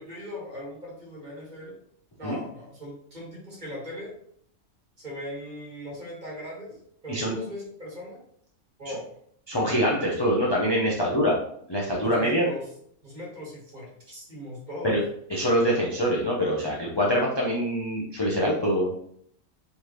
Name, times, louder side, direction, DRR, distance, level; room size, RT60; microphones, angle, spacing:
voice 1, 0.0-1.7 2.2-4.1 5.0-6.7 7.0-8.2 8.8-9.1 10.9-11.1 12.0-12.7 13.0-15.0, left 1 dB, 35° right, -4 dB, 1.6 m, -39 dB
voice 2, 9.5-11.3 11.7-12.5 14.8-15.0 15.3-18.9, equal, 30° left, -4 dB, 0.5 m, -24 dB
4.4 x 3.3 x 3.0 m, 0.67 s
omnidirectional pair, 1.4 m